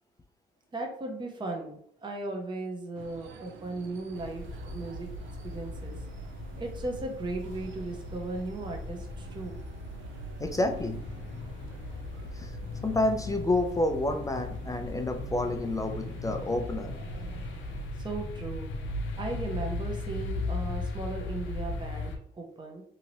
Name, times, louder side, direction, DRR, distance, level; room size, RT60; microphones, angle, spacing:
voice 1, 0.7-5.1 5.4-6.0 6.6-9.6 18.0-18.7 19.2-22.8, right 2 dB, 25° right, 2 dB, 0.7 m, -37 dB
sound 1, 2.9-17.9, right 6 dB, 75° right, 0.5 m, -49 dB
sound 2, 4.1-22.2, left 2 dB, 75° left, 0.6 m, -37 dB
voice 2, 10.4-11.1 12.3-12.6 12.8-17.0, left 2 dB, 15° left, 5 dB, 0.3 m, -29 dB
2.8 x 2.7 x 2.9 m, 0.65 s
cardioid pair, 90°, 20 cm